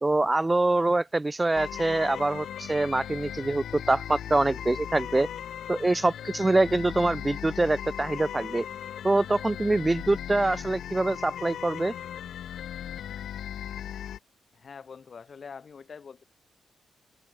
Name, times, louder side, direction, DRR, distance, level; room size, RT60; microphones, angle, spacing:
voice 1, 0.0-5.3 5.7-8.7 9.0-11.9, right 2 dB, 20° right, 1.8 m, -25 dB
sound 1, 1.5-14.2, left 10 dB, 75° left, 2.9 m, -38 dB
voice 2, 14.5-16.2, left 6 dB, 50° left, 7.7 m, -44 dB
open air
cardioid pair, 65°, 0 cm